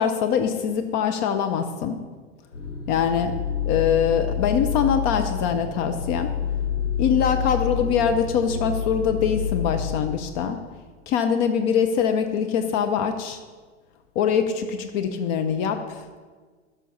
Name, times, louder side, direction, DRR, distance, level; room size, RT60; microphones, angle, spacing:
voice 1, 0.0-2.0 2.9-3.3 3.7-6.3 7.0-10.6 11.1-13.4 14.1-16.2, left 7 dB, 40° left, 7 dB, 0.8 m, -23 dB
sound 1, 2.5-10.2, left 7 dB, 85° left, 1.7 m, -28 dB
13.0 x 5.7 x 5.4 m, 1.4 s
figure-of-eight pair, 85°, 35 cm